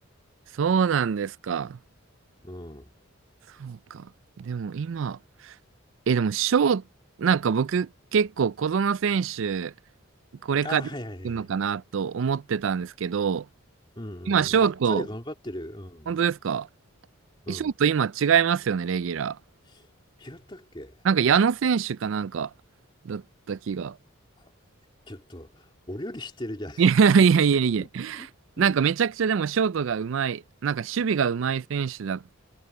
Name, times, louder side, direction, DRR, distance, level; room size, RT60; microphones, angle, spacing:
voice 1, 0.6-1.8 3.6-4.1 4.4-5.2 5.4-5.5 6.1-6.8 7.2-9.7 10.4-10.8 11.2-13.5 14.3-15.0 16.1-16.7 17.5-19.4 21.0-22.5 23.1-24.0 26.8-28.3 28.6-32.2, right 6 dB, 65° right, 0.4 m, -24 dB
voice 2, 2.4-2.9 10.6-11.5 14.0-16.1 17.5-17.7 19.7-19.9 20.2-21.0 24.4-24.5 25.1-26.8 27.4-27.5 27.8-27.9 28.1-28.3 28.6-28.7, left 1 dB, 20° left, 2.8 m, -38 dB
head